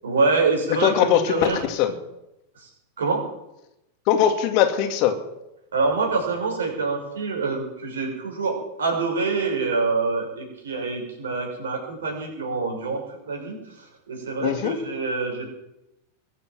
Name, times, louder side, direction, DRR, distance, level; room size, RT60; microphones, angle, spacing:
voice 1, 0.0-1.6 2.5-2.7 3.0-3.2 5.7-13.0 13.2-15.5, right 4 dB, 65° right, 1 dB, 6.5 m, -26 dB
voice 2, 0.8-1.9 4.1-5.1 14.4-14.8, left 10 dB, 45° left, 6 dB, 2.3 m, -21 dB
22.5 x 8.4 x 7.5 m, 0.88 s
figure-of-eight pair, 90°, 0 cm